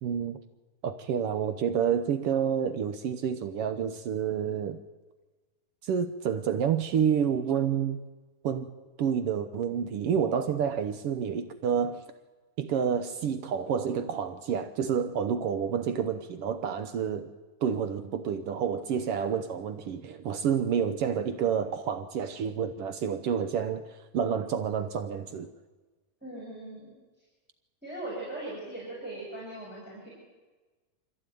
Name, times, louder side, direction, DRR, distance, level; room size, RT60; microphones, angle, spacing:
voice 1, 0.0-0.4 0.8-4.8 5.8-8.0 8.4-8.7 9.0-12.0 12.6-17.3 17.6-25.5, right 7 dB, 90° right, 1.2 m, -29 dB
voice 2, 26.2-26.9 27.8-30.1, right 1 dB, 5° right, 6.2 m, -39 dB
25.5 x 15.0 x 9.2 m
omnidirectional pair, 3.9 m